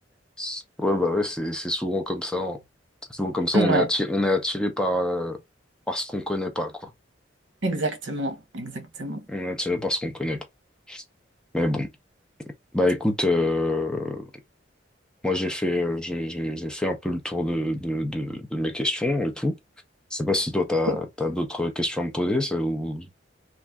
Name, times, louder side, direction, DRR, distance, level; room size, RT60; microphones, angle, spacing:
voice 1, 0.4-2.6 3.1-5.4 5.9-6.9 9.3-10.4 10.9-11.0 11.5-11.9 12.7-14.3 15.2-19.6 20.1-23.1, left 1 dB, 5° left, 0.6 m, -26 dB
voice 2, 3.5-3.9 7.6-9.2 20.9-21.0, right 2 dB, 75° right, 0.9 m, -26 dB
3.3 x 2.5 x 2.2 m
head